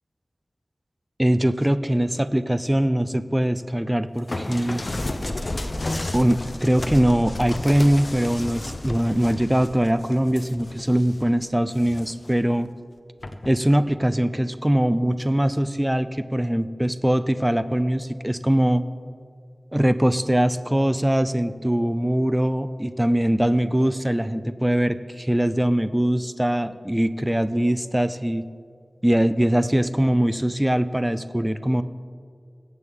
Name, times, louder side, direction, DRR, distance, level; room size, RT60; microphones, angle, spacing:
voice 1, 1.2-4.8 6.1-12.7 13.5-18.8 19.7-28.4 29.0-31.8, right 1 dB, 10° right, 12 dB, 0.5 m, -22 dB
sound 1, 4.3-11.3 11.7-12.4 13.2-13.5, left 1 dB, 45° left, 0.8 m, -32 dB
21.5 x 8.3 x 3.7 m, 2.2 s
wide cardioid pair, 70°, 0 cm